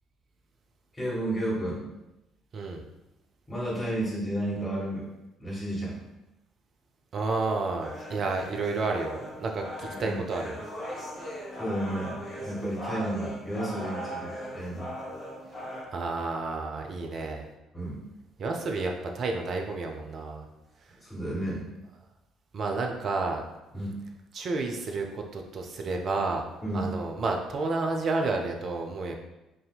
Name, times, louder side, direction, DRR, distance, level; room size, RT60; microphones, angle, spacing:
voice 1, 0.9-1.9 3.5-5.0 5.4-6.0 10.0-10.2 11.6-14.9 17.7-18.0 21.0-21.7 23.7-24.0 26.6-26.9, right 1 dB, 20° left, -5 dB, 1.5 m, -32 dB
voice 2, 2.5-2.8 7.1-10.6 15.9-17.5 18.4-20.5 20.9-21.0 22.5-23.4 24.3-26.5 26.7-29.1, right 3 dB, 45° right, 3 dB, 0.5 m, -30 dB
sound 1, 7.8-15.8, equal, 40° left, 1.2 m, -39 dB
4.8 x 2.7 x 2.2 m, 0.95 s
figure-of-eight pair, 50°, 0 cm